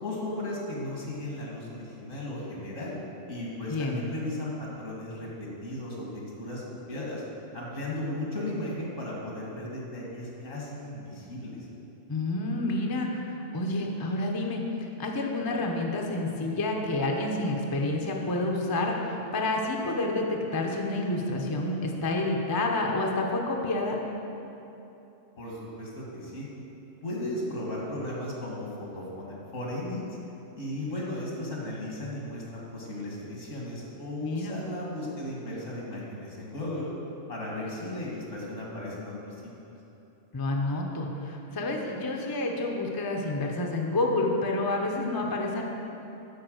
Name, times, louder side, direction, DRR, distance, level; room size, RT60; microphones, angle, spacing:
voice 1, 0.0-3.0 3.3-6.6 6.9-7.2 7.5-11.6 25.4-26.5 27.0-30.0 30.5-36.9 37.3-39.5, left 1 dB, 75° left, -3 dB, 2.0 m, -36 dB
voice 2, 3.7-4.0 12.1-13.2 13.5-14.6 15.0-24.0 34.2-34.6 40.3-45.6, left 2 dB, 25° left, 1 dB, 0.5 m, -29 dB
9.5 x 4.2 x 6.3 m, 2.9 s
omnidirectional pair, 1.3 m